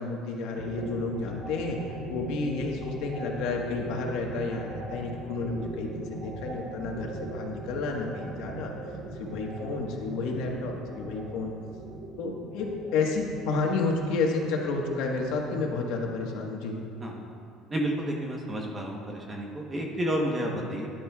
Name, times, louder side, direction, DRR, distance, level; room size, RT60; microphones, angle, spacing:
voice 1, 0.0-8.7 9.1-11.5 12.2-16.7, left 3 dB, 70° left, 0 dB, 1.3 m, -31 dB
sound 1, 0.6-16.7, right 3 dB, 50° right, 1.2 m, -40 dB
voice 2, 17.7-20.9, right 1 dB, 15° right, 0 dB, 1.0 m, -31 dB
13.5 x 10.5 x 2.3 m, 2.5 s
cardioid pair, 170°, 0 cm